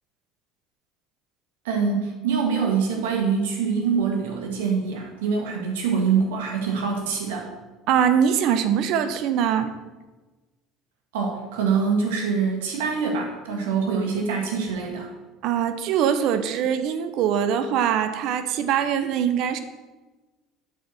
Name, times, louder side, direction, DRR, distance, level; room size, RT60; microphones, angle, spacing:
voice 1, 1.6-7.5 11.1-15.1, right 5 dB, 85° right, 1 dB, 1.7 m, -24 dB
voice 2, 7.9-9.7 15.4-19.6, right 8 dB, 65° right, 10 dB, 0.8 m, -22 dB
8.1 x 4.6 x 6.3 m, 1.2 s
supercardioid pair, 85°, 0 cm